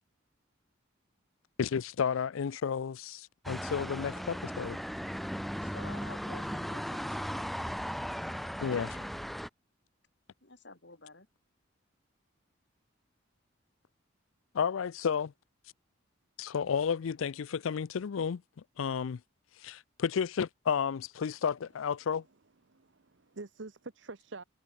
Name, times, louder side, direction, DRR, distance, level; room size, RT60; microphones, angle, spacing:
voice 1, 1.6-4.8 8.6-9.0 14.5-15.3 16.4-18.4 18.8-19.2 19.6-22.2, left 7 dB, 85° left, 0.4 m, -32 dB
sound 1, 3.4-9.5, equal, ahead, 0.9 m, -37 dB
voice 2, 5.6-7.4 10.4-11.3, left 3 dB, 60° left, 3.6 m, -50 dB
voice 3, 22.7-24.4, right 3 dB, 65° right, 1.0 m, -46 dB
head